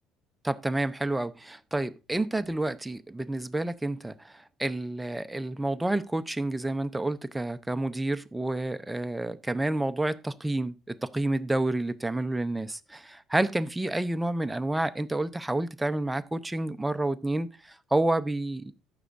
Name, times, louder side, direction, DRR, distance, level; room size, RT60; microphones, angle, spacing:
voice 1, 0.4-18.7, right 2 dB, 10° right, 0.5 m, -29 dB
15.0 x 6.2 x 2.5 m
cardioid pair, 120°, 0 cm